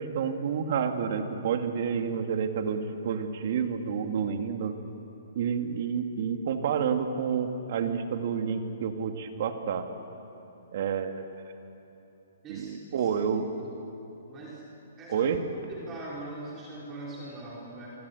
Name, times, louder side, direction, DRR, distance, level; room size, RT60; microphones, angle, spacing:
voice 1, 0.0-4.8 5.4-9.8 10.7-11.2 12.5-13.5 15.1-15.4, right 7 dB, 55° right, 6 dB, 2.3 m, -29 dB
voice 2, 12.4-13.1 13.6-13.7 14.3-14.6 15.0-15.3 15.7-17.9, right 2 dB, 20° right, -5 dB, 4.8 m, -42 dB
25.5 x 24.5 x 8.3 m, 2.9 s
hypercardioid pair, 140°, 0 cm